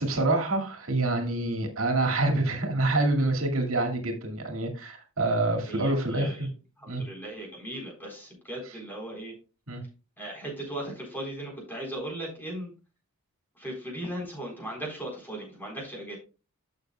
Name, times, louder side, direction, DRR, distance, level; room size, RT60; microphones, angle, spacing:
voice 1, 0.0-6.5 6.9-7.0 9.7-9.8, right 2 dB, 65° right, 2.1 m, -26 dB
voice 2, 5.6-6.5 6.8-9.3 10.2-12.7 13.6-16.2, right 1 dB, 10° left, 4.0 m, -37 dB
12.0 x 6.7 x 2.3 m
head